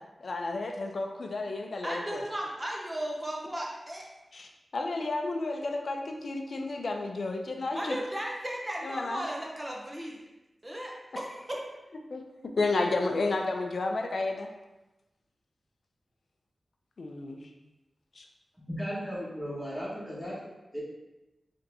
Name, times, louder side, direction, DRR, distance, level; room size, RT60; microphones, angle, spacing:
voice 1, 0.0-2.2 4.3-8.0 8.8-9.2 12.1-14.5 17.0-17.5 18.2-18.3, left 3 dB, 65° left, 3 dB, 0.5 m, -32 dB
voice 2, 1.8-4.1 7.7-10.2 10.6-11.6, equal, 20° right, -2 dB, 0.6 m, -35 dB
voice 3, 18.6-20.3 20.7-20.8, equal, ahead, -8 dB, 1.4 m, -35 dB
4.0 x 3.3 x 2.7 m, 1.0 s
wide cardioid pair, 105°, 0 cm